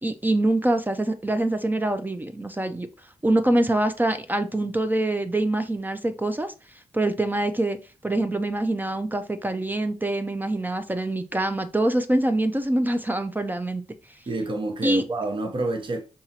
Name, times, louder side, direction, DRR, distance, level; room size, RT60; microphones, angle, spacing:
voice 1, 0.0-2.9 3.2-6.5 6.9-7.8 8.0-13.8 14.8-15.0, right 1 dB, 15° right, 0.4 m, -24 dB
voice 2, 14.3-16.0, right 2 dB, 50° right, 0.8 m, -28 dB
4.5 x 2.8 x 2.8 m
cardioid pair, 60°, 11 cm